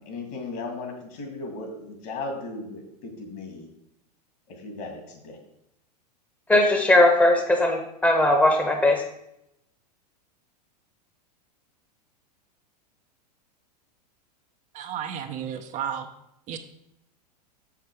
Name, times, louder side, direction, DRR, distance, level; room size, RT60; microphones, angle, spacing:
voice 1, 0.1-3.7 4.5-5.4, left 3 dB, 50° left, 4 dB, 2.3 m, -36 dB
voice 2, 6.5-9.0, left 1 dB, 5° left, 3 dB, 1.1 m, -19 dB
voice 3, 14.7-16.1 16.5-16.6, right 9 dB, 35° right, 5 dB, 0.7 m, -32 dB
6.6 x 5.9 x 4.8 m, 0.80 s
hypercardioid pair, 100°, 21 cm